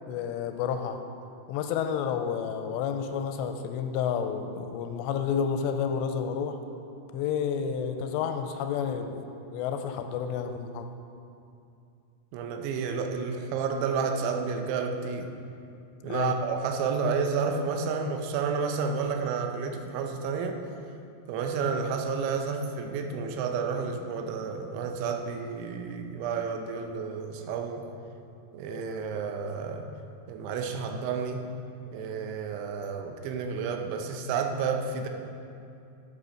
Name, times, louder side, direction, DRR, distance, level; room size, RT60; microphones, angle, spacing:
voice 1, 0.1-1.0 1.5-6.6 7.1-9.2 9.5-10.9 16.0-16.4, left 7 dB, 85° left, 6 dB, 2.7 m, -30 dB
voice 2, 12.3-15.3 16.0-20.6 21.3-27.9 28.5-29.9 30.3-31.5 31.9-35.1, right 5 dB, 90° right, 4 dB, 3.2 m, -30 dB
11.0 x 8.5 x 5.1 m, 2.6 s
omnidirectional pair, 5.2 m